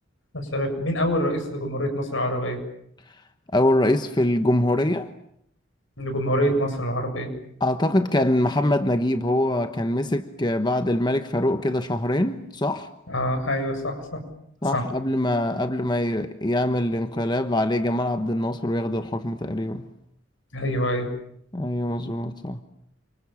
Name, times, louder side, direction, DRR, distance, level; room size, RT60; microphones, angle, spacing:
voice 1, 0.3-2.6 6.0-7.3 13.1-14.2 14.7-14.8 20.5-21.1, equal, 75° left, 6 dB, 7.4 m, -25 dB
voice 2, 3.5-5.1 7.6-12.9 14.6-19.8 21.5-22.6, left 1 dB, 20° left, 8 dB, 1.1 m, -23 dB
29.0 x 27.0 x 7.4 m, 0.72 s
head